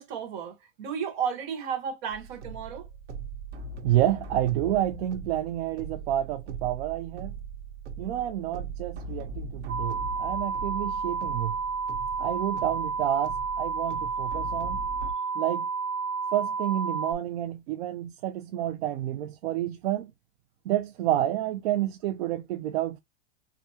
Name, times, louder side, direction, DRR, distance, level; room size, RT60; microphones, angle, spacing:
voice 1, 0.0-2.9, right 7 dB, 45° right, 1.2 m, -33 dB
sound 1, 2.1-15.1, right 3 dB, 85° right, 1.2 m, -40 dB
voice 2, 3.8-7.3 8.0-11.6 12.2-14.8 15.4-15.7 16.3-20.1 20.6-23.0, right 13 dB, 65° right, 0.5 m, -29 dB
sound 2, 9.7-17.1, right 5 dB, 15° right, 0.7 m, -31 dB
4.8 x 2.3 x 2.6 m
supercardioid pair, 165°, 34 cm